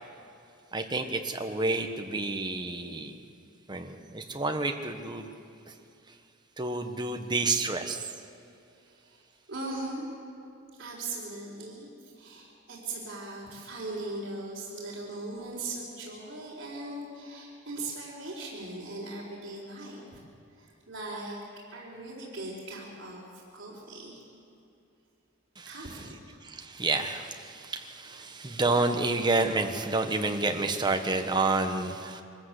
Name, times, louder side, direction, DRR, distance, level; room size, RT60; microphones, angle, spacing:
voice 1, 0.7-3.2 3.7-5.3 6.6-8.1 25.6-25.8 26.4-32.2, right 3 dB, 20° right, 5 dB, 1.3 m, -29 dB
voice 2, 9.5-10.1 10.8-20.2 20.6-21.4 21.7-23.2 23.5-24.2 25.7-26.4 28.0-28.2, right 2 dB, 55° right, -7 dB, 4.2 m, -39 dB
23.5 x 14.0 x 8.3 m, 2.7 s
head